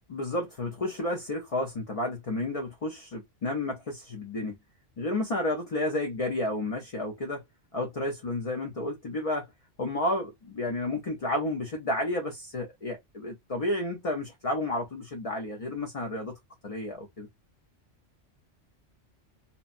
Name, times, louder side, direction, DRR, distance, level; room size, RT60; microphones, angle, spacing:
voice 1, 0.1-4.6 5.0-7.4 7.7-9.5 9.8-17.3, left 1 dB, 40° left, 0.5 m, -31 dB
2.9 x 2.1 x 2.4 m
omnidirectional pair, 1.3 m